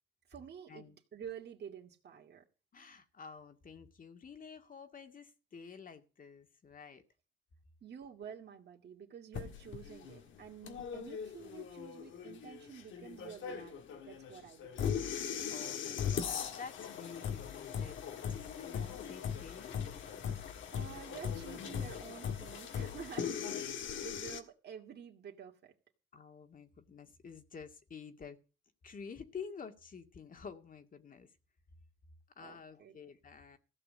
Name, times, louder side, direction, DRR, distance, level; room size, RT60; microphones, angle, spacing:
voice 1, 0.3-2.4 7.8-15.0 20.4-25.7 32.4-33.0, right 8 dB, 55° right, 2.3 m, -50 dB
voice 2, 2.7-7.0 15.5-18.0 18.3-20.0 20.4-20.6 26.1-28.4 28.8-31.3 32.4-33.6, left 6 dB, 45° left, 2.1 m, -50 dB
sound 1, 9.3-24.4, left 8 dB, 75° left, 1.7 m, -39 dB
15.5 x 6.1 x 8.6 m
cardioid pair, 90°, 20 cm